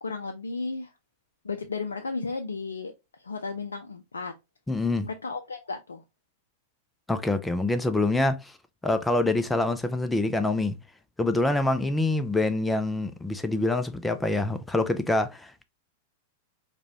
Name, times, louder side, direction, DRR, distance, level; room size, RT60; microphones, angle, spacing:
voice 1, 0.0-0.9 1.4-4.3 5.0-6.0, left 4 dB, 80° left, 0.4 m, -34 dB
voice 2, 4.7-5.1 7.1-8.5 8.8-10.8 11.2-15.6, left 2 dB, 10° left, 0.4 m, -25 dB
4.8 x 2.2 x 2.8 m
figure-of-eight pair, 95°, 0 cm